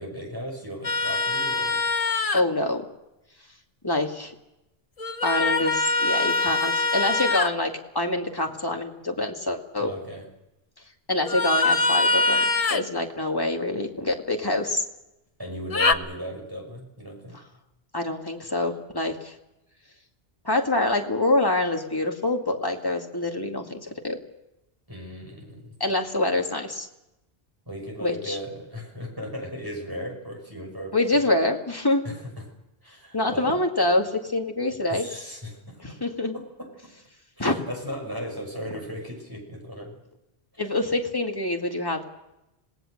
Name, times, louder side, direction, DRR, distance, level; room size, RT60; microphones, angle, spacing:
voice 1, 0.0-1.8 9.8-10.2 15.4-17.4 24.9-25.7 27.7-31.2 32.0-32.4 32.8-33.6 34.9-36.0 36.3-36.9 37.4-40.0 40.5-40.6, equal, 20° right, 1 dB, 6.3 m, -37 dB
sound 1, 0.8-2.4 5.0-7.5 11.3-12.9 15.7-15.9, left 3 dB, 35° left, 0.9 m, -23 dB
voice 2, 2.3-2.8 3.8-4.3 5.2-9.9 11.1-14.8 17.9-19.3 20.4-24.2 25.8-26.9 28.0-28.4 30.9-32.0 33.1-35.1 35.8-36.3 37.4-37.6 40.6-42.0, left 2 dB, 20° left, 2 dB, 2.3 m, -26 dB
26.5 x 19.0 x 6.6 m, 0.92 s
omnidirectional pair, 1.1 m